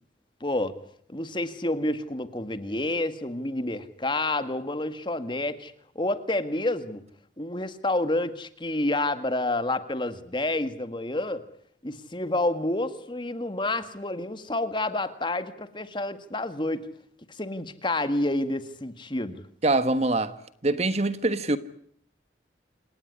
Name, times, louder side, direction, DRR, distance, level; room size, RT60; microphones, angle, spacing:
voice 1, 0.4-0.7 1.1-7.0 7.4-11.4 11.8-16.9 17.4-19.4, left 2 dB, 25° left, 1.8 m, -29 dB
voice 2, 19.6-20.3 20.6-21.6, right 2 dB, 35° right, 1.3 m, -24 dB
28.0 x 18.0 x 9.9 m
head